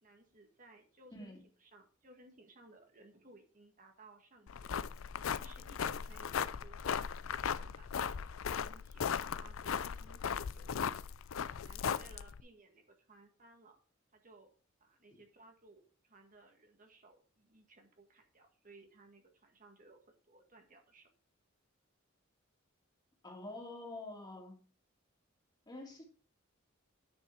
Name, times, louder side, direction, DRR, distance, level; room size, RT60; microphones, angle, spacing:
voice 1, 0.0-4.8 5.3-7.1 7.5-11.1 11.6-13.8 14.1-14.5 14.8-20.0 20.3-21.1, right 2 dB, 40° right, 4 dB, 1.6 m, -60 dB
sound 1, 4.5-12.4, left 7 dB, 75° left, 0.5 m, -37 dB
voice 2, 23.2-24.6 25.7-26.1, left 2 dB, 20° left, 0 dB, 2.6 m, -47 dB
9.7 x 5.7 x 4.6 m, 0.39 s
head